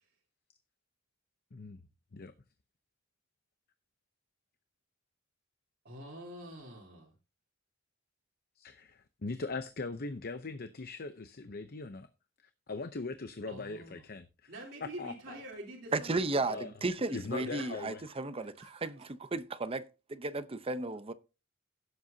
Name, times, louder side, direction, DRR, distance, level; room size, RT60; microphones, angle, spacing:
voice 1, 5.8-7.1 13.5-14.1 14.5-16.3 16.6-16.7 17.1-17.7 18.1-19.0, right 1 dB, 50° right, 3.3 m, -47 dB
voice 2, 8.6-12.1 12.7-14.5 14.8-15.4 16.4-16.7 17.1-18.0, left 3 dB, 50° left, 0.7 m, -40 dB
voice 3, 15.9-19.8 20.1-21.1, right 3 dB, 25° right, 0.7 m, -34 dB
16.5 x 7.8 x 2.8 m
head